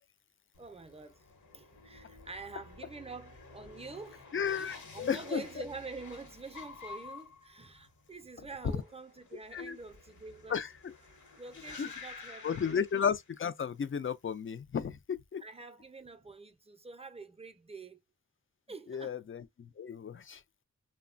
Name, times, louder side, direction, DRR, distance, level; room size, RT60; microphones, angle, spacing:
sound 1, 0.5-13.6 13.9-14.5, left 4 dB, 65° left, 0.9 m, -51 dB
voice 1, 0.6-1.3 1.5-10.6 11.4-12.8 15.4-18.0 18.7-19.2, right 3 dB, 20° right, 0.5 m, -46 dB
voice 2, 4.3-5.4 8.7-8.8 9.5-9.8 10.5-10.9 11.8-11.9 12.4-15.4 18.9-20.4, left 7 dB, 40° left, 0.4 m, -34 dB
3.0 x 2.1 x 2.4 m
cardioid pair, 45°, 32 cm